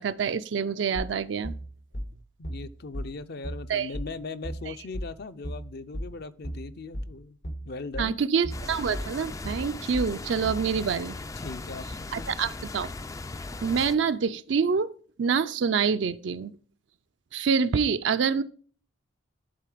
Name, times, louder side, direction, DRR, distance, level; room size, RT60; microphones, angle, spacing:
voice 1, 0.0-1.5 3.7-3.9 8.0-11.2 12.1-12.9 13.6-14.9 15.2-16.5 17.3-18.4, right 6 dB, 65° right, 0.4 m, -26 dB
sound 1, 0.9-10.7, equal, 90° left, 2.0 m, -36 dB
voice 2, 2.4-7.4 7.6-8.2 11.4-12.3, left 3 dB, 55° left, 0.6 m, -39 dB
sound 2, 8.5-13.9, left 3 dB, 15° left, 0.3 m, -38 dB
11.5 x 3.8 x 4.9 m
head